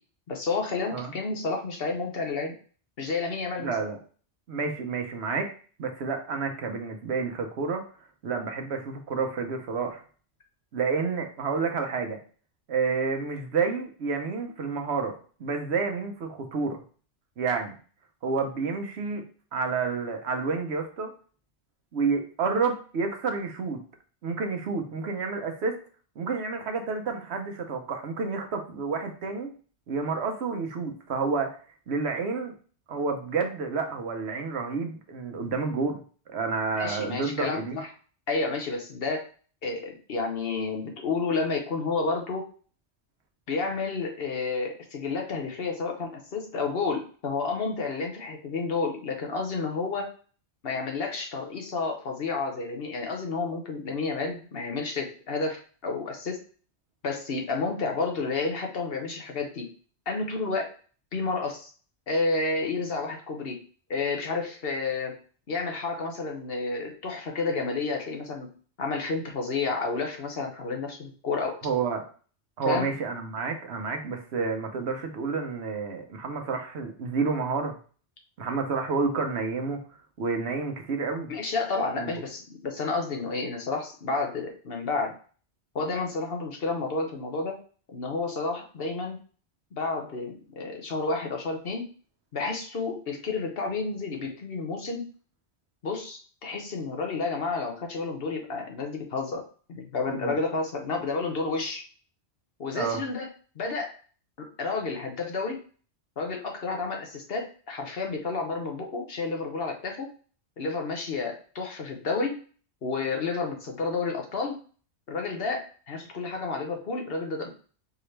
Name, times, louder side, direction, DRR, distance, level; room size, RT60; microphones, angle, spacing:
voice 1, 0.3-2.5 3.0-3.7 36.7-37.9 38.3-39.2 39.6-42.5 43.5-50.1 50.6-56.4 57.0-59.7 60.1-60.7 61.1-61.7 62.1-63.6 63.9-65.1 65.5-68.5 68.8-71.6 72.6-72.9 81.3-85.1 85.7-87.6 87.9-89.2 89.7-91.8 92.3-95.0 95.8-99.4 99.7-101.8 102.6-103.3 103.6-103.9 104.6-105.6 106.2-110.1 110.6-112.3 112.8-114.6 115.1-117.5, left 4 dB, 60° left, 2 dB, 1.1 m, -30 dB
voice 2, 3.6-4.0 4.5-5.5 5.8-7.9 8.2-10.0 10.7-12.2 12.7-16.8 17.4-17.8 18.2-19.2 19.5-21.1 21.9-23.8 24.2-25.8 26.2-29.5 29.9-31.6 31.9-32.5 32.9-36.0 36.3-37.8 71.6-72.1 72.6-77.8 78.4-79.8 80.2-81.3 82.0-82.2 100.1-100.4 102.7-103.0, right 4 dB, 70° right, 5 dB, 1.0 m, -29 dB
4.7 x 3.0 x 3.2 m, 0.41 s
omnidirectional pair, 1.2 m